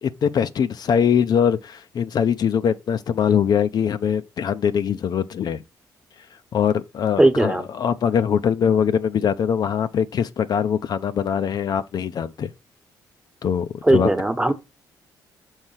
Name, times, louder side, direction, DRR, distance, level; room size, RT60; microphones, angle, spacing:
voice 1, 0.0-5.6 6.5-12.5 13.4-14.1 14.5-14.6, left 8 dB, 60° left, 0.6 m, -22 dB
voice 2, 7.2-7.7 13.8-14.5, right 1 dB, 10° right, 1.1 m, -18 dB
6.5 x 4.3 x 5.7 m
supercardioid pair, 70°, 8 cm